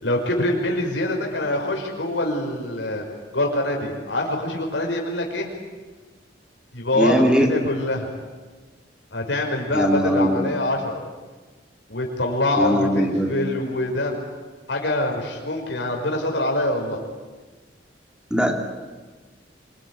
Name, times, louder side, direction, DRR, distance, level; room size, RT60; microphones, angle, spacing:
voice 1, 0.0-3.0 3.3-5.5 6.7-8.1 9.1-11.0 11.9-14.1 14.7-17.0, left 1 dB, 85° left, 1 dB, 5.5 m, -24 dB
voice 2, 6.9-7.5 9.7-10.5 12.6-13.3 18.3-18.6, equal, 5° right, 3 dB, 2.7 m, -20 dB
26.5 x 22.5 x 9.8 m, 1.3 s
head